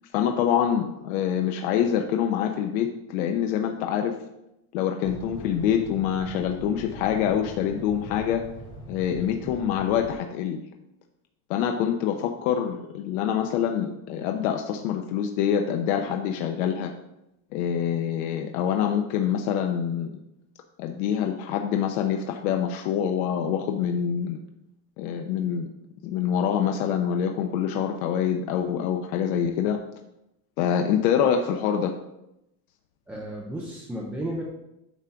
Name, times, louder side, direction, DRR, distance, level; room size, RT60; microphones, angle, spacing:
voice 1, 0.1-4.1 4.7-8.4 8.9-10.6 11.5-16.9 17.5-20.2 20.8-24.4 25.0-25.7 26.0-29.8 30.6-31.9, left 8 dB, 85° left, 4 dB, 0.8 m, -25 dB
sound 1, 5.0-10.1, equal, 15° left, 2.3 m, -42 dB
voice 2, 33.1-34.4, right 1 dB, 5° right, -3 dB, 0.3 m, -33 dB
9.5 x 3.8 x 5.7 m, 0.87 s
cardioid pair, 180°, 42 cm